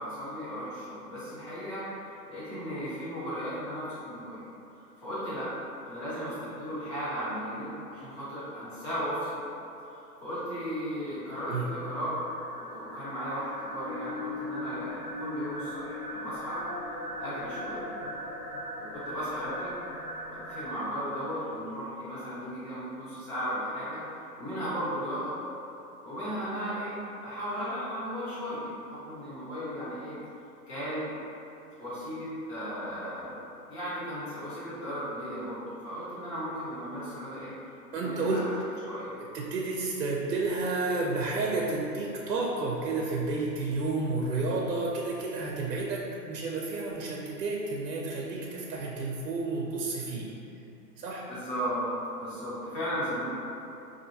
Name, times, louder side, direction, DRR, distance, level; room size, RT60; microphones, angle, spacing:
voice 1, 0.0-1.9 2.3-4.4 5.0-5.5 5.9-9.4 9.8-12.2 12.5-16.6 17.2-17.8 18.8-19.7 20.3-25.4 26.0-27.0 27.2-30.1 30.7-31.1 31.8-33.4 33.7-37.5 37.9-38.5 38.9-39.1 51.3-51.9 52.1-53.3, equal, 40° left, -11 dB, 1.5 m, -35 dB
sound 1, 11.2-20.9, left 1 dB, 65° left, 0.7 m, -39 dB
voice 2, 37.9-38.4 39.3-50.3 51.0-51.3, right 3 dB, 70° right, -2 dB, 0.6 m, -31 dB
3.5 x 2.6 x 2.7 m, 2.8 s
hypercardioid pair, 170°, 49 cm